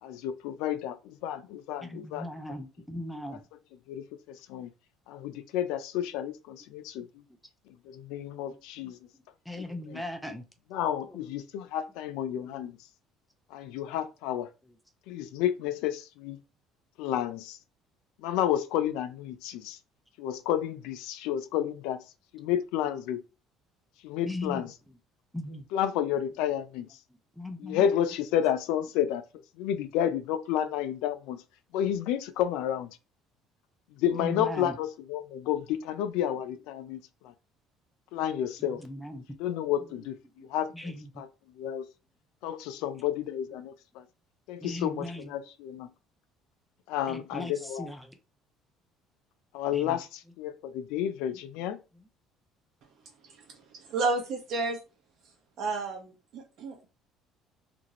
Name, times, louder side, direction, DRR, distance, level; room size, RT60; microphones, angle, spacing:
voice 1, 0.0-2.6 3.3-3.4 3.9-4.7 5.1-7.3 7.8-9.0 9.6-10.0 10.7-12.8 13.5-14.5 15.1-16.4 17.0-17.6 18.2-19.8 20.2-22.0 22.3-23.2 24.0-24.7 25.5-27.0 27.6-29.2 29.6-31.4 31.7-32.9 33.9-37.3 38.1-38.8 39.4-41.3 41.5-41.8 42.4-44.1 44.5-45.9 46.9-47.9 49.5-51.8, left 10 dB, 85° left, 0.4 m, -31 dB
voice 2, 1.8-3.4 9.5-10.4 24.3-24.6 25.3-25.7 27.4-27.8 34.2-34.7 38.6-39.2 40.4-40.5 40.7-41.1 44.6-45.3 47.1-47.5 47.8-48.2 49.7-50.0, left 1 dB, ahead, 0.3 m, -38 dB
voice 3, 53.2-54.8 55.6-56.9, right 3 dB, 50° right, 0.9 m, -32 dB
2.9 x 2.6 x 2.9 m
cardioid pair, 160°, 0 cm